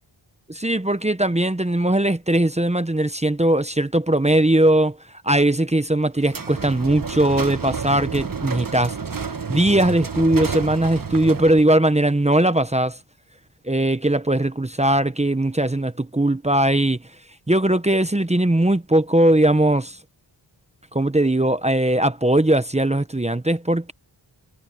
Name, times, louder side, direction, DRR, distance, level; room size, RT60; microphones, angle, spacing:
voice 1, 0.5-5.0 5.2-9.0 9.5-13.0 13.6-17.0 17.5-20.0 20.9-23.9, right 1 dB, 15° right, 0.9 m, -19 dB
sound 1, 6.2-11.7, right 5 dB, 45° right, 1.4 m, -30 dB
wide cardioid pair, 80°, 47 cm